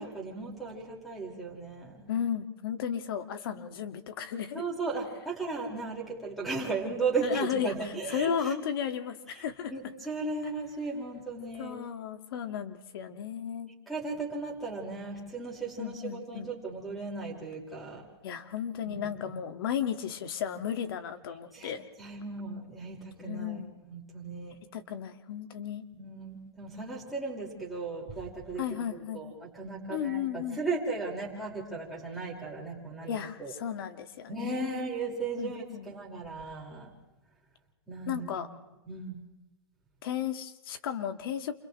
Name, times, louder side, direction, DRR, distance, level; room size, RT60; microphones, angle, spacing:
voice 1, 0.0-2.1 4.5-8.5 9.3-9.4 9.7-11.8 13.9-18.1 18.8-19.4 21.5-21.7 22.0-24.6 25.9-33.5 34.3-36.9 37.9-38.5 38.9-39.2, right 3 dB, ahead, -1 dB, 5.3 m, -36 dB
voice 2, 2.1-4.6 7.2-9.7 11.6-13.7 15.8-16.5 18.2-21.8 23.2-23.7 24.7-25.8 28.6-29.2 29.9-30.6 33.1-34.8 35.4-35.9 38.1-38.5 40.0-41.5, left 9 dB, 60° left, 8 dB, 2.1 m, -34 dB
29.0 x 28.5 x 3.3 m, 1.0 s
hypercardioid pair, 150°, 13 cm